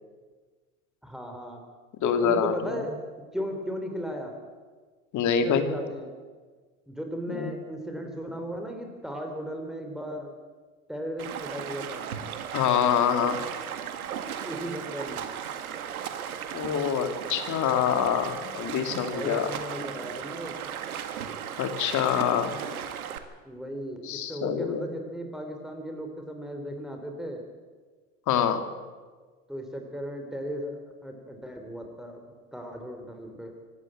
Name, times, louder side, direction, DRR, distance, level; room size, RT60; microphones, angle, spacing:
voice 1, 1.0-1.6 2.0-4.3 5.4-6.1 6.9-10.3 10.9-12.0 14.4-15.3 18.9-20.6 23.4-27.4 29.5-32.2 32.5-33.5, equal, ahead, 3 dB, 3.4 m, -36 dB
voice 2, 2.0-2.8 5.1-5.7 7.3-7.5 12.5-13.4 16.5-19.5 21.6-22.6 24.0-24.9 28.3-28.6, left 8 dB, 45° left, 8 dB, 2.8 m, -26 dB
Stream, 11.2-23.2, right 8 dB, 90° right, 2.0 m, -36 dB
25.5 x 12.5 x 8.9 m, 1.5 s
hypercardioid pair, 105°, 42 cm